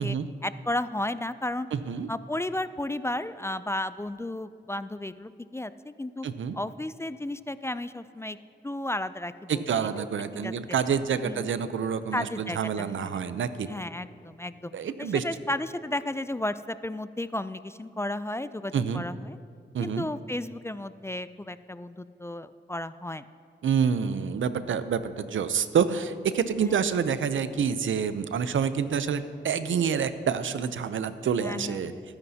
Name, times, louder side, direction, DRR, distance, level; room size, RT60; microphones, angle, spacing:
voice 1, 0.4-1.7 2.1-6.3 6.5-8.4 8.6-9.6 10.0-10.1 10.3-10.5 11.2-11.5 12.1-13.2 13.7-14.7 15.0-19.4 19.8-23.2 26.6-26.8 31.4-32.0, left 1 dB, 15° left, 14 dB, 0.3 m, -33 dB
voice 2, 1.7-2.1 6.2-6.6 9.5-13.7 14.7-15.2 18.7-19.0 19.7-20.1 23.6-31.9, right 7 dB, 80° right, 12 dB, 0.6 m, -27 dB
22.0 x 9.7 x 2.8 m, 2.4 s
cardioid pair, 60°, 20 cm